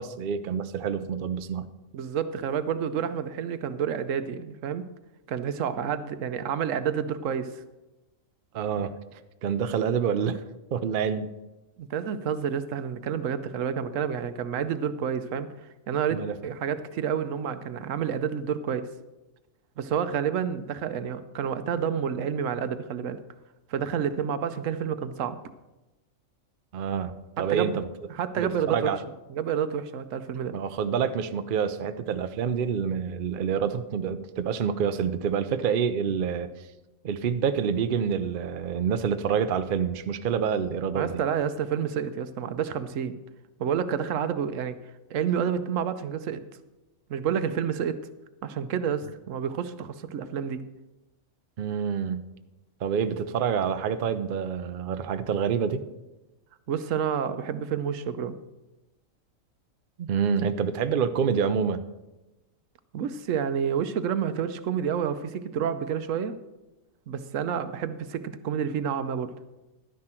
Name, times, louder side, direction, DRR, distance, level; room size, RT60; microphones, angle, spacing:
voice 1, 0.0-1.7 8.5-8.9 9.4-10.4 10.7-11.3 16.1-16.4 26.7-27.9 28.4-29.0 30.5-36.5 37.0-41.2 51.6-52.3 52.8-55.8 60.0-61.8, right 7 dB, 55° right, 10 dB, 0.6 m, -27 dB
voice 2, 1.9-4.9 5.3-7.6 11.8-18.9 19.8-23.2 23.7-25.4 27.4-27.8 28.1-28.9 29.3-30.6 40.9-43.1 43.6-44.8 45.1-46.4 47.1-48.0 48.4-50.6 56.7-58.4 62.9-66.3 67.1-69.3, right 8 dB, 75° right, 11 dB, 1.0 m, -29 dB
11.5 x 9.8 x 4.4 m, 1.0 s
omnidirectional pair, 1.4 m